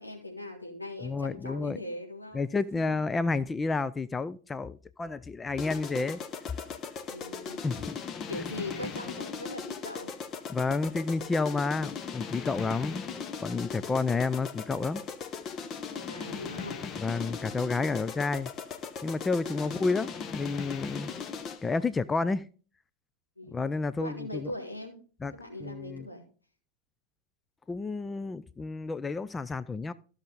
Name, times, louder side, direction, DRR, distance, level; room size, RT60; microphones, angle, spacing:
voice 1, 0.0-3.0 7.1-7.6 8.3-10.1 15.9-16.9 19.4-19.9 23.4-23.6 24.0-24.9 25.3-26.2, left 1 dB, 85° left, 3.5 m, -40 dB
voice 2, 1.0-1.8 2.3-6.2 7.6-8.0 10.5-13.1 13.4-15.0 17.0-18.5 19.0-21.1 21.6-22.5 23.5-24.5 25.2-25.3 25.6-26.1 27.7-29.9, left 3 dB, 15° left, 0.4 m, -30 dB
sound 1, 5.6-21.8, left 6 dB, 30° left, 0.9 m, -38 dB
15.0 x 6.4 x 3.7 m
figure-of-eight pair, 90°, 0 cm